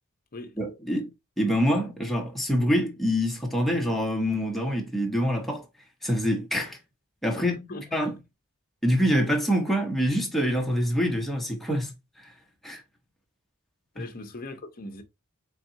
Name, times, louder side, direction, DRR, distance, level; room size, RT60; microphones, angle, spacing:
voice 1, 0.6-1.1 1.4-5.7 6.0-6.8 7.2-7.5 7.9-8.1 8.8-11.9 12.6-12.8 14.0-14.1, equal, ahead, 0.8 m, -25 dB
voice 2, 7.4-8.2 13.9-15.0, left 2 dB, 40° left, 0.7 m, -40 dB
4.0 x 3.6 x 2.7 m
head